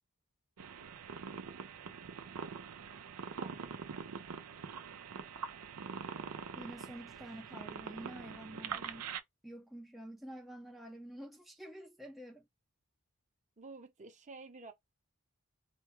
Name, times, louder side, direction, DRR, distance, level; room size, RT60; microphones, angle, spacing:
sound 1, 0.6-9.2, right 6 dB, 90° right, 0.5 m, -44 dB
voice 1, 3.4-3.7 13.6-14.7, right 3 dB, 35° right, 0.7 m, -51 dB
voice 2, 6.6-9.1 9.4-12.5, right 1 dB, ahead, 0.5 m, -49 dB
4.2 x 2.2 x 2.9 m
head